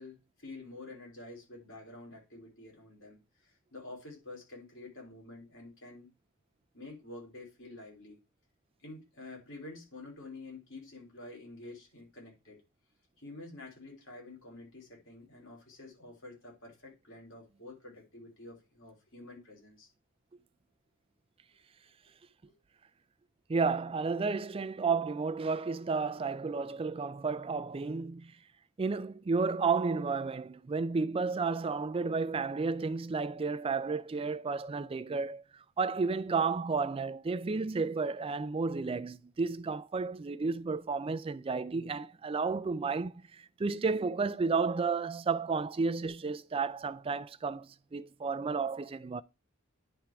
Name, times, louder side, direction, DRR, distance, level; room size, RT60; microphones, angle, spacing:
voice 1, 0.0-6.1 6.7-8.2 8.8-12.6 13.2-19.9 22.5-22.6 46.0-46.1, left 2 dB, 60° left, 3.1 m, -49 dB
voice 2, 23.5-28.4 28.8-49.2, right 4 dB, 25° right, 0.3 m, -32 dB
10.0 x 3.6 x 4.5 m
head